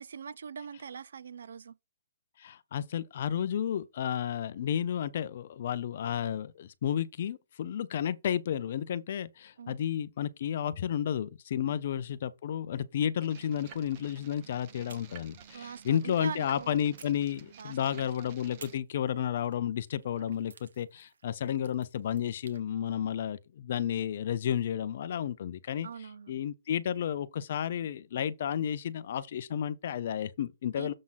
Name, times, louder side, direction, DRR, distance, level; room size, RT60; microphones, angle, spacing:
voice 1, 0.0-1.8 9.6-9.8 11.6-11.8 15.5-16.9 17.6-18.1 25.8-26.3 30.8-30.9, right 6 dB, 60° right, 0.5 m, -43 dB
voice 2, 2.4-25.9 26.3-30.9, left 9 dB, 35° left, 0.6 m, -32 dB
sound 1, 13.2-18.8, right 8 dB, 25° right, 0.7 m, -52 dB
sound 2, 14.9-16.4 17.0-18.0 18.6-22.6, right 5 dB, 80° right, 1.5 m, -56 dB
7.4 x 3.8 x 5.6 m
hypercardioid pair, 180°, 0 cm